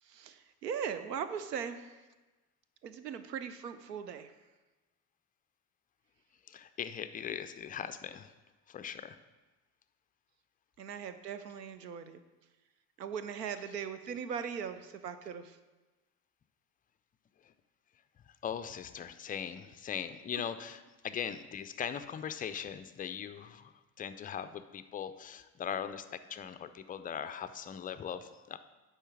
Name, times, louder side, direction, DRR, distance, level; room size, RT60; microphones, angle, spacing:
voice 1, 0.0-2.0 2.8-4.3 10.8-12.2 13.0-15.6, right 7 dB, 90° right, 11 dB, 0.5 m, -39 dB
voice 2, 6.5-8.3 8.7-9.2 17.4-17.5 18.3-28.6, left 8 dB, 20° left, 11 dB, 0.3 m, -40 dB
9.9 x 3.3 x 6.1 m, 1.2 s
figure-of-eight pair, 55°, 47 cm